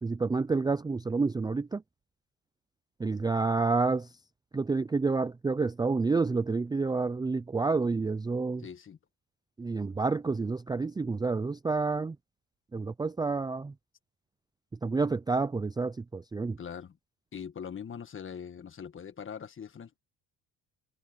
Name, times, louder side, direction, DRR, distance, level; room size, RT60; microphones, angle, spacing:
voice 1, 0.0-1.8 3.0-4.1 4.5-8.6 9.6-12.2 12.7-13.7 14.8-16.6, right 4 dB, 10° right, 0.4 m, -29 dB
voice 2, 8.6-9.0 16.6-17.0 17.3-20.0, left 7 dB, 35° left, 1.5 m, -42 dB
cardioid pair, 110°, 36 cm